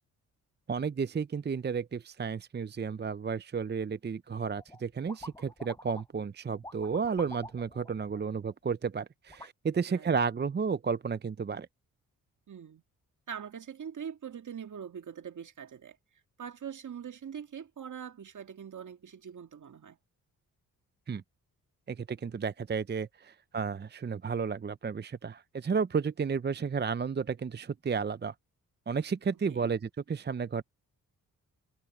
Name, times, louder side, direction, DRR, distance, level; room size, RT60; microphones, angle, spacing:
voice 1, 0.7-11.7 21.1-21.2 21.9-28.3 28.9-30.6, right 5 dB, 30° right, 0.7 m, -32 dB
sound 1, 4.6-4.8 5.1-6.2 6.5-8.7 9.3-9.5, left 1 dB, 10° left, 6.1 m, -47 dB
voice 2, 9.8-10.2 12.5-12.8 13.3-16.0 16.4-20.0 29.5-29.7, right 8 dB, 55° right, 2.0 m, -43 dB
supercardioid pair, 50°, 36 cm